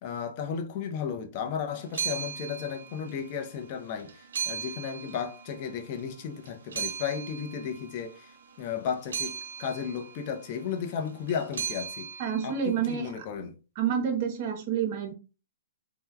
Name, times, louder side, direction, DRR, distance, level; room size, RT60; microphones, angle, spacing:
voice 1, 0.0-12.1 12.4-13.6, left 7 dB, 40° left, 0.6 m, -34 dB
sound 1, 1.8-3.5 3.8-6.1 6.5-13.0, right 7 dB, 75° right, 0.4 m, -38 dB
voice 2, 12.2-13.1 13.8-15.1, right 8 dB, 45° right, 0.7 m, -28 dB
3.2 x 2.1 x 2.3 m
hypercardioid pair, 140°, 0 cm